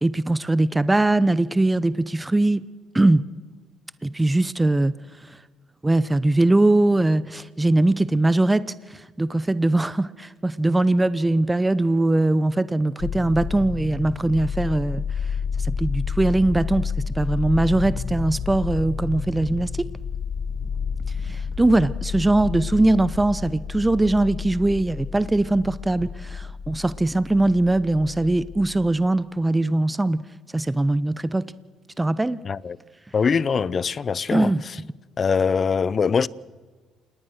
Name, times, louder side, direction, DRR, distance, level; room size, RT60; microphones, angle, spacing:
voice 1, 0.0-2.6 2.9-3.2 4.0-4.9 5.3-5.4 5.8-8.6 8.9-15.0 15.7-19.9 21.2-30.2 30.5-31.5 32.0-32.4 34.3-34.6, right 2 dB, 15° right, 0.8 m, -21 dB
sound 1, 13.0-28.9, left 6 dB, 60° left, 1.9 m, -30 dB
voice 2, 32.4-32.8 33.1-34.8 35.2-36.3, left 6 dB, 40° left, 0.7 m, -23 dB
27.5 x 20.0 x 6.6 m
hypercardioid pair, 60°, 0 cm